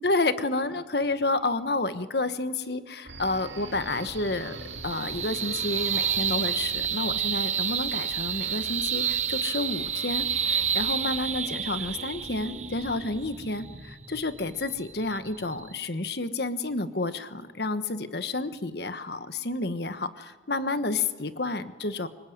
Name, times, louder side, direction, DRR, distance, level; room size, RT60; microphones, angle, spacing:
voice 1, 0.0-4.6 4.8-22.1, left 2 dB, 60° left, 11 dB, 1.4 m, -30 dB
sound 1, 3.0-13.8, right 1 dB, 80° right, 2.8 m, -45 dB
sound 2, 3.1-15.7, right 8 dB, 40° right, 1.1 m, -30 dB
25.0 x 23.0 x 9.5 m, 1.4 s
head